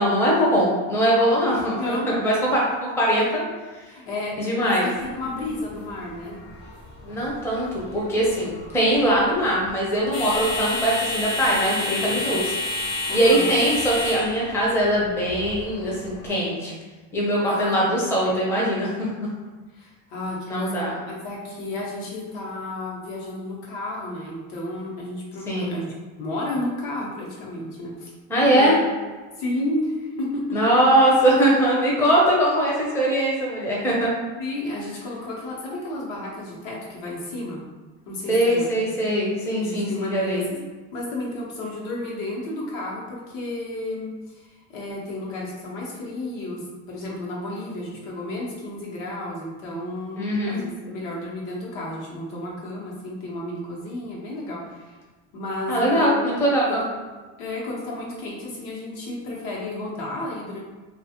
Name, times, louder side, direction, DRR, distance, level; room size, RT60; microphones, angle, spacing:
voice 1, 0.0-3.4 3.8-3.9 4.4-4.9 7.1-12.4 13.1-16.7 17.1-19.1 20.5-21.0 25.5-25.8 28.3-28.8 30.5-34.1 38.3-40.5 50.2-50.6 55.7-56.8, right 1 dB, 5° left, -5 dB, 0.4 m, -21 dB
voice 2, 1.8-2.1 3.9-6.4 11.7-12.5 13.1-13.5 17.4-17.8 19.7-20.7 21.0-28.1 28.4-28.8 29.4-30.4 34.4-37.6 38.0-38.9 39.6-40.6 40.9-55.0 55.3-56.2 56.7-56.8 57.4-60.6, left 1 dB, 75° left, -4 dB, 1.0 m, -32 dB
sound 1, 5.0-16.3, left 2 dB, 55° left, 0.9 m, -31 dB
2.4 x 2.4 x 2.8 m, 1.3 s
cardioid pair, 130°, 39 cm